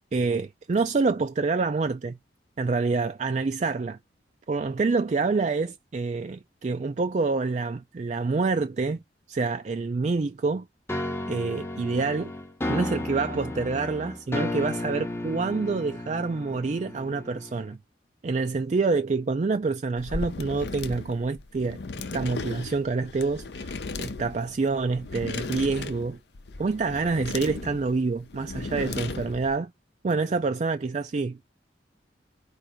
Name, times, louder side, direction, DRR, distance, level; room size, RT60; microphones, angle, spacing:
voice 1, 0.1-2.2 2.6-4.0 4.5-9.0 9.3-10.7 11.3-12.3 12.7-17.8 18.2-21.8 22.1-26.2 26.6-29.7 30.0-31.4, right 4 dB, 40° right, 0.4 m, -27 dB
sound 1, 10.9-17.7, left 1 dB, 15° left, 0.7 m, -33 dB
sound 2, 20.0-29.6, left 3 dB, 70° left, 0.6 m, -36 dB
4.9 x 2.4 x 4.3 m
head